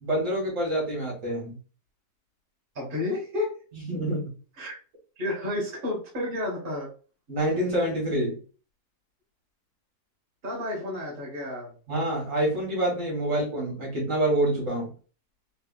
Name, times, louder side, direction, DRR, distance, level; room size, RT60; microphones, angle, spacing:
voice 1, 0.0-1.6 3.7-4.3 7.3-8.4 11.9-14.9, right 1 dB, 55° right, -2 dB, 1.8 m, -27 dB
voice 2, 2.7-3.5 4.6-4.8 5.2-6.9 10.4-11.7, left 2 dB, 35° right, -4 dB, 1.3 m, -31 dB
3.3 x 3.3 x 2.4 m, 0.38 s
omnidirectional pair, 1.7 m